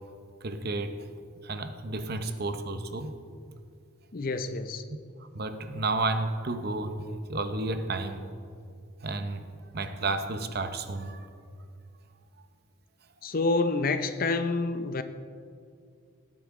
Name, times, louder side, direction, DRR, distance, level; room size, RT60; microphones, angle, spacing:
voice 1, 0.4-1.0 1.4-3.1 4.9-5.0 5.3-8.2 9.0-9.4 9.7-11.3, right 2 dB, 45° right, 8 dB, 0.7 m, -31 dB
voice 2, 4.1-4.9 13.2-15.0, left 3 dB, 40° left, 10 dB, 0.6 m, -28 dB
18.5 x 8.8 x 3.7 m, 2.3 s
head